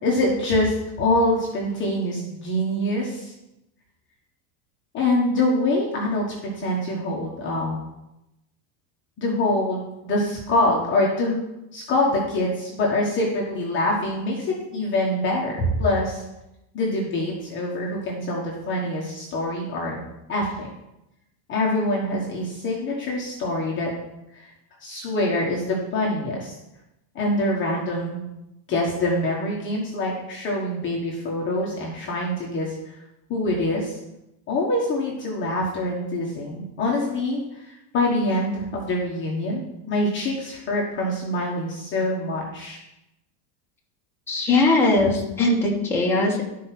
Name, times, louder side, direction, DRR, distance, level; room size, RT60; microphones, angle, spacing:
voice 1, 0.0-3.3 4.9-7.8 9.2-11.4 11.7-16.2 16.7-20.0 20.3-20.7 21.5-23.9 24.3-24.5 24.8-26.5 27.1-28.2 28.7-33.0 33.3-34.0 34.5-39.6 39.9-42.8, left 1 dB, 25° left, -3 dB, 1.2 m, -25 dB
voice 2, 44.3-46.4, left 2 dB, 5° left, -5 dB, 1.5 m, -20 dB
12.0 x 4.7 x 5.9 m, 0.92 s
cardioid pair, 175°, 49 cm